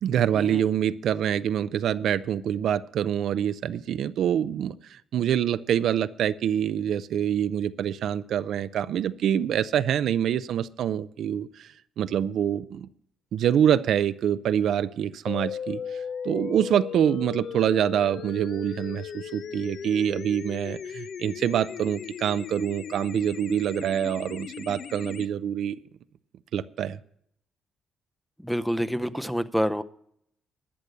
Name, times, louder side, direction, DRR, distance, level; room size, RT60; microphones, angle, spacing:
voice 1, 0.0-11.7 12.0-12.9 13.3-25.8 26.5-27.0, right 9 dB, 70° right, 14 dB, 0.4 m, -26 dB
sound 1, 15.3-25.3, left 7 dB, 60° left, 0.5 m, -37 dB
voice 2, 28.4-29.8, equal, ahead, 14 dB, 0.6 m, -27 dB
12.0 x 6.7 x 8.0 m, 0.69 s
cardioid pair, 90°, 0 cm